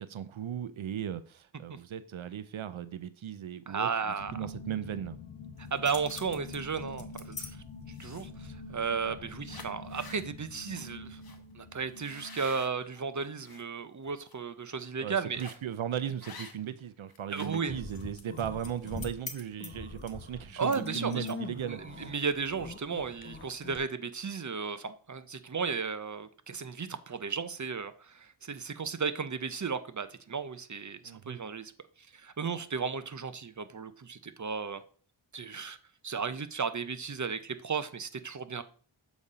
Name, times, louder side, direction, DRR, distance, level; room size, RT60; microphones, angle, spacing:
voice 1, 0.0-5.2 15.0-22.1 31.0-31.4, right 9 dB, 80° right, 0.6 m, -37 dB
voice 2, 3.7-4.5 5.7-7.6 7.9-11.2 11.5-15.4 17.3-17.8 20.6-21.3 21.6-31.7 32.0-34.8 35.3-35.8 36.0-38.6, right 5 dB, 40° right, 0.6 m, -34 dB
sound 1, 4.2-13.6, left 2 dB, 80° left, 0.9 m, -46 dB
sound 2, 5.6-7.5 7.9-8.4 9.0-9.2 9.4-10.2 10.7-10.9 11.2-11.4 11.9-13.6 14.1-14.3 15.4-15.7 16.2-16.8 17.1-21.6, left 4 dB, 50° left, 1.0 m, -47 dB
sound 3, 17.6-19.1 19.5-23.8, left 3 dB, 25° left, 0.9 m, -43 dB
7.1 x 4.1 x 4.9 m
wide cardioid pair, 70°, 47 cm